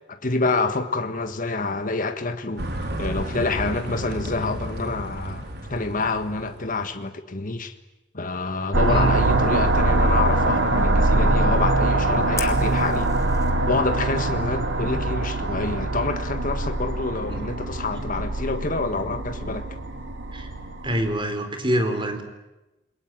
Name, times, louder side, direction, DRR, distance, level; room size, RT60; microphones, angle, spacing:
voice 1, 0.1-2.7 3.0-7.7 8.1-13.1 13.7-19.7, left 3 dB, 45° left, 1.6 m, -27 dB
sound 1, 2.6-6.9, right 1 dB, 60° right, 4.3 m, -32 dB
sound 2, 8.7-21.1, right 2 dB, 90° right, 3.1 m, -23 dB
Fire, 12.4-13.5, left 5 dB, 20° left, 3.3 m, -37 dB
voice 2, 20.8-22.2, equal, 25° right, 4.1 m, -25 dB
28.5 x 22.0 x 9.1 m
head